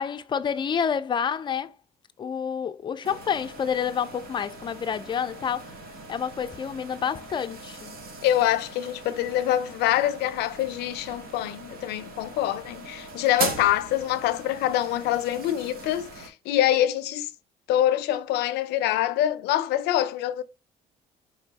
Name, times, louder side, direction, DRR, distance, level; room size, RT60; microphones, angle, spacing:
voice 1, 0.0-1.7 2.2-5.7 6.1-7.9, left 7 dB, 25° left, 0.4 m, -28 dB
sound 1, 3.0-16.3, right 4 dB, 65° right, 1.0 m, -40 dB
voice 2, 8.2-17.3 17.7-20.4, left 12 dB, 80° left, 0.5 m, -25 dB
4.2 x 3.0 x 2.7 m
cardioid pair, 110°, 17 cm